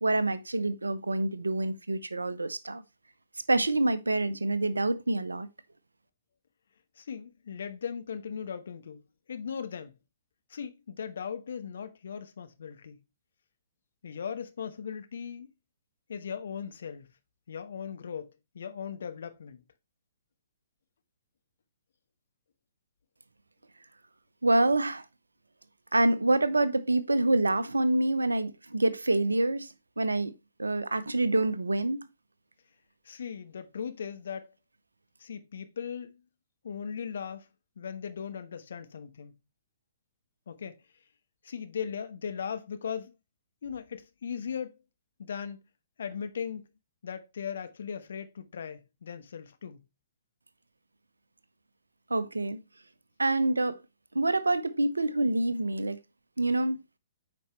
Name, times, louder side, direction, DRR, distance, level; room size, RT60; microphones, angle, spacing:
voice 1, 0.0-2.8 3.5-5.5 24.4-25.0 25.9-30.3 30.6-32.1 52.1-52.6 53.2-53.8 54.1-56.0 56.4-56.8, right 2 dB, 80° right, 0.8 m, -26 dB
voice 2, 7.0-10.0 10.5-13.0 14.0-15.5 16.1-17.1 17.5-19.6 33.0-34.5 35.2-36.2 36.6-37.5 37.8-39.4 40.5-40.8 41.4-43.1 43.6-44.8 45.2-45.6 46.0-46.7 47.0-49.8, left 7 dB, 60° left, 1.1 m, -38 dB
8.5 x 5.3 x 3.1 m
figure-of-eight pair, 120°, 0 cm